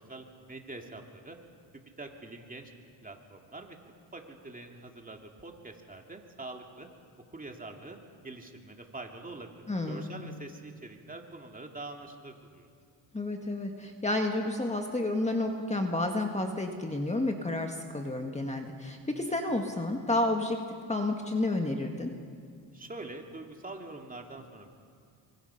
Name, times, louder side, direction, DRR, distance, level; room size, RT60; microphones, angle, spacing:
voice 1, 0.0-1.4 2.0-2.7 3.0-3.8 4.1-6.9 7.3-8.0 8.2-12.7 22.7-24.7, right 2 dB, 20° right, 2 dB, 2.6 m, -44 dB
voice 2, 9.7-10.1 13.1-20.6 20.9-22.1, left 2 dB, 15° left, 3 dB, 1.8 m, -30 dB
26.0 x 24.5 x 5.9 m, 2.3 s
cardioid pair, 95°, 45 cm